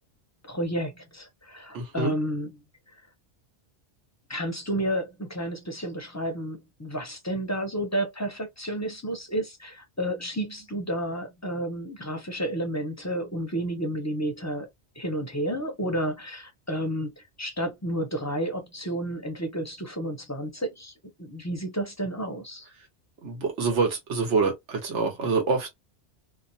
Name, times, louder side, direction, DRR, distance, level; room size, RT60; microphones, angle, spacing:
voice 1, 0.4-2.5 4.3-14.7 15.0-22.7, right 1 dB, 20° left, 0.5 m, -31 dB
voice 2, 1.7-2.1 23.2-25.7, right 4 dB, 85° right, 1.3 m, -26 dB
2.8 x 2.0 x 2.6 m
omnidirectional pair, 1.2 m